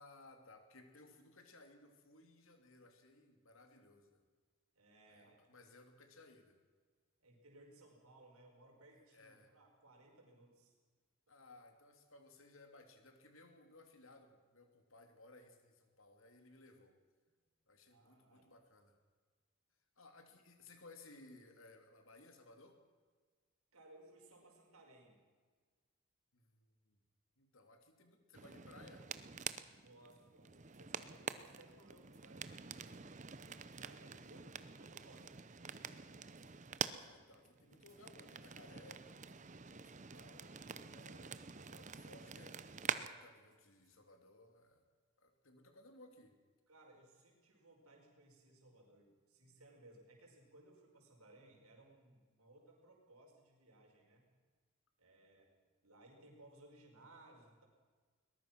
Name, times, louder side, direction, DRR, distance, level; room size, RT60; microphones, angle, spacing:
voice 1, 0.0-4.2 5.1-6.6 8.9-9.5 11.3-17.0 17.7-19.0 20.0-22.8 26.3-27.0 27.4-29.1 37.0-44.9 45.2-46.4, left 2 dB, 70° left, 5 dB, 2.9 m, -61 dB
voice 2, 4.8-5.7 7.2-10.8 17.9-18.5 23.7-25.2 29.7-36.3 46.7-54.3 55.0-55.5 55.8-57.7, right 1 dB, 85° right, 0 dB, 5.4 m, -63 dB
sound 1, 28.3-43.1, right 6 dB, 35° right, 0.7 m, -47 dB
sound 2, 30.1-30.4 30.7-30.9 31.4-31.6 32.1-32.5 32.9-33.0 33.7-34.4 35.2-35.6 36.2-36.6 36.9-37.2 37.9-38.6 39.3-39.5 40.1-40.3 40.6-40.7 41.0-41.1 41.6-43.9, right 4 dB, 15° right, 5.2 m, -79 dB
22.0 x 20.0 x 6.1 m, 1.5 s
head